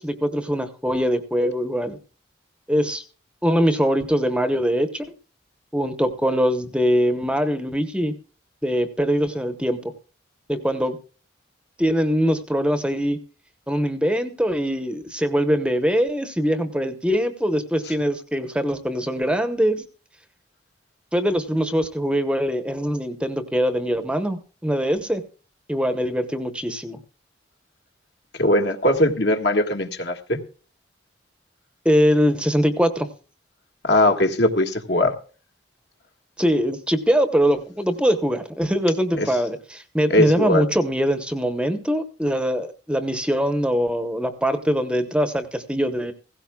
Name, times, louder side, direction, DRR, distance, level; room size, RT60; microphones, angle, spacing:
voice 1, 0.0-2.0 2.7-3.0 3.4-5.1 5.7-8.1 8.6-9.9 10.5-11.0 11.8-13.2 13.7-19.9 21.1-25.2 25.7-27.0 31.8-33.1 36.4-46.1, equal, 5° right, 0.9 m, -22 dB
voice 2, 28.4-30.4 33.8-35.1 39.2-39.3 40.1-40.6, left 1 dB, 60° left, 1.7 m, -20 dB
16.5 x 16.5 x 2.3 m
head